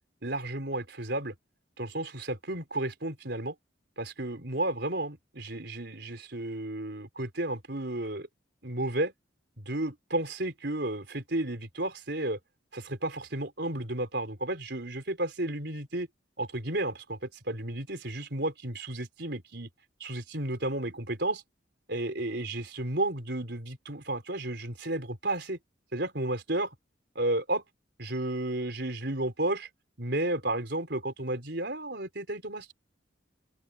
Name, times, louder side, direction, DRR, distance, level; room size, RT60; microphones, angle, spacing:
voice 1, 0.2-1.3 1.8-3.5 4.0-8.3 8.6-9.1 9.6-12.4 12.7-16.1 16.4-19.7 20.0-21.4 21.9-25.6 25.9-26.7 27.1-27.6 28.0-29.7 30.0-32.7, right 1 dB, 60° right, 4.4 m, -32 dB
open air
head